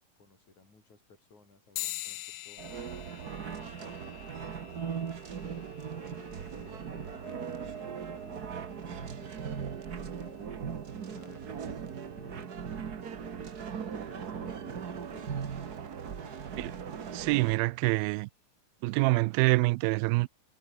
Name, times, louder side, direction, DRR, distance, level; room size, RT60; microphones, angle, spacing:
voice 1, 0.2-2.9 3.4-5.0 5.4-10.8 11.1-15.5 16.1-16.5, left 3 dB, 55° left, 9.3 m, -56 dB
sound 1, 1.8-11.6, left 15 dB, 90° left, 3.0 m, -46 dB
sound 2, 2.6-17.6, right 7 dB, 55° right, 1.0 m, -39 dB
voice 2, 17.1-18.3 18.8-20.3, right 23 dB, 90° right, 2.4 m, -26 dB
omnidirectional pair, 4.1 m